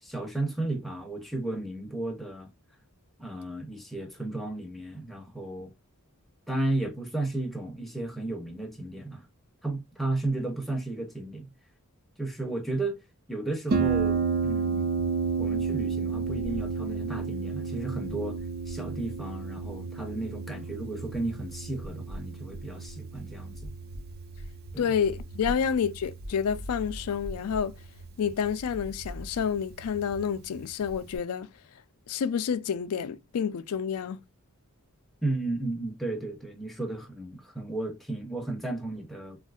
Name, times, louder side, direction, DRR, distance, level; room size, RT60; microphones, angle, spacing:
voice 1, 0.0-2.5 3.2-5.7 6.5-9.3 9.6-11.5 12.2-13.0 13.3-14.9 15.4-23.7 24.7-24.9 35.2-39.4, right 2 dB, ahead, 0.6 m, -34 dB
Harp, 13.7-31.2, right 5 dB, 45° right, 0.4 m, -33 dB
voice 2, 24.8-27.7 28.2-31.5 32.1-34.2, left 7 dB, 75° left, 0.4 m, -29 dB
3.6 x 2.4 x 2.3 m
head